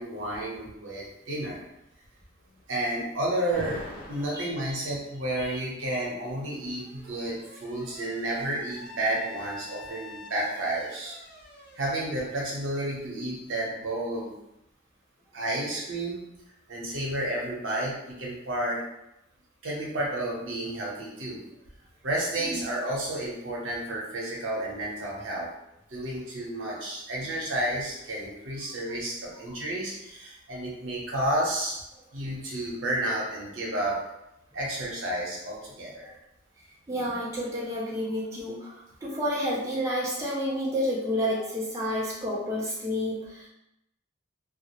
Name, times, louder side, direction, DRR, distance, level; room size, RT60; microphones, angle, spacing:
voice 1, 0.0-1.6 2.7-11.2 11.8-14.3 15.3-16.2 16.7-18.8 19.6-21.4 22.0-25.5 25.9-31.8 32.1-34.0 34.5-36.1, right 1 dB, 75° right, -3 dB, 0.8 m, -31 dB
Alarm, 3.5-4.5 5.7-13.4, left 1 dB, 50° left, 0.5 m, -46 dB
voice 2, 36.9-43.5, equal, 15° right, -6 dB, 0.4 m, -30 dB
2.3 x 2.0 x 2.9 m, 0.83 s
head